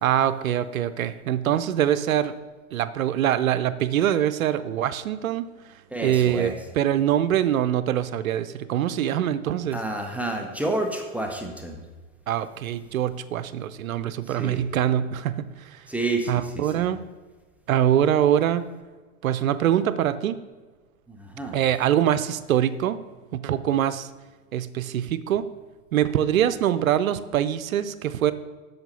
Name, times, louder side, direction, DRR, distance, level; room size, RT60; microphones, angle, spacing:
voice 1, 0.0-2.3 2.7-5.5 6.0-9.8 12.3-15.4 15.7-15.8 16.3-17.0 17.7-18.7 19.2-20.4 21.5-23.0 23.3-24.1 24.5-25.5 25.9-28.3, right 10 dB, 90° right, 13 dB, 0.7 m, -24 dB
voice 2, 5.9-6.5 9.7-11.8 14.3-14.6 15.9-16.8 21.1-21.5, right 2 dB, 5° right, 2 dB, 0.8 m, -29 dB
7.9 x 6.4 x 5.3 m, 1.3 s
hypercardioid pair, 120°, 40 cm